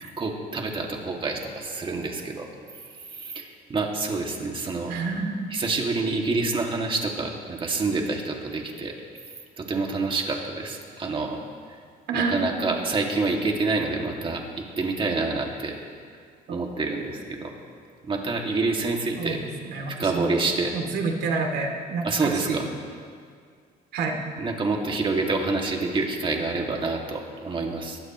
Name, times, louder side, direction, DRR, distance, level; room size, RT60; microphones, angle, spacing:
voice 1, 0.2-2.5 3.1-4.9 5.5-8.9 9.6-11.4 12.1-15.8 16.5-17.5 18.0-19.4 19.9-20.7 22.0-22.7 24.4-28.0, right 3 dB, 30° right, 1 dB, 2.3 m, -27 dB
voice 2, 4.9-5.4 12.1-12.5 16.5-16.6 19.2-20.3 20.7-22.6 23.9-24.2, right 4 dB, 75° right, 2 dB, 2.6 m, -28 dB
22.0 x 16.0 x 3.1 m, 2.1 s
cardioid pair, 110°, 17 cm